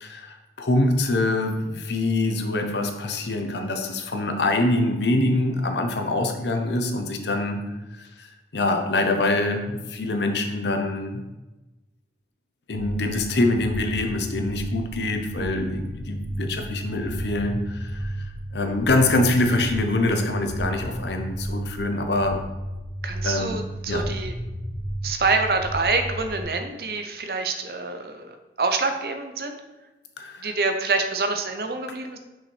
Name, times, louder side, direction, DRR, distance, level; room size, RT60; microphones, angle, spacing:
voice 1, 0.0-7.6 7.9-11.2 12.7-22.4 23.2-23.6 23.9-24.1 30.2-30.5, left 2 dB, 80° left, 5 dB, 0.7 m, -25 dB
sound 1, 12.7-26.4, right 1 dB, 50° left, 0.9 m, -33 dB
voice 2, 23.0-24.3 25.0-28.3 28.6-29.6 30.4-32.2, right 3 dB, 60° right, 6 dB, 0.6 m, -26 dB
5.7 x 5.1 x 3.3 m, 1.1 s
head